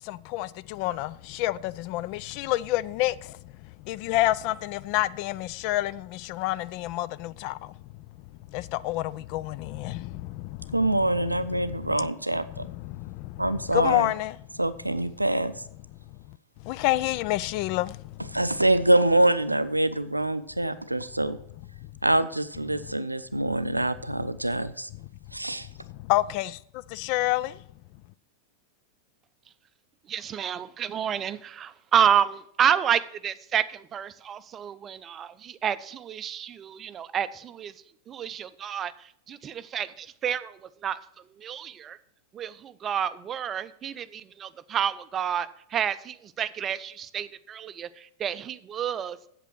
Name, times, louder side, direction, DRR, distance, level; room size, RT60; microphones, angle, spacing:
voice 1, 0.0-3.4 3.8-7.7 8.5-10.8 11.0-11.1 11.5-11.9 12.7-14.4 16.3-16.4 16.6-18.4 25.9-27.6, left 16 dB, 45° left, 0.3 m, -29 dB
voice 2, 10.7-12.7 13.4-14.1 14.6-15.6 18.3-21.4 22.0-24.9 25.3-25.7, right 1 dB, 85° right, 0.5 m, -25 dB
voice 3, 30.1-37.7 38.1-41.0 41.4-42.0 42.3-49.2, right 9 dB, 25° right, 0.5 m, -29 dB
8.1 x 7.5 x 6.0 m
figure-of-eight pair, 90°, 0 cm